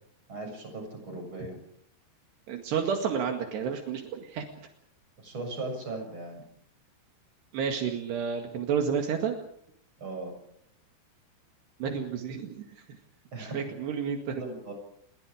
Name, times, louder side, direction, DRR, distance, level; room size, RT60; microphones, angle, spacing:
voice 1, 0.3-1.6 5.2-6.4 10.0-10.3 13.3-13.8 14.4-14.7, right 2 dB, 30° right, 4 dB, 7.7 m, -38 dB
voice 2, 2.5-4.5 7.5-9.3 11.8-12.8 13.4-14.4, right 7 dB, 75° right, 3 dB, 4.1 m, -30 dB
29.0 x 22.0 x 5.0 m, 0.68 s
omnidirectional pair, 4.9 m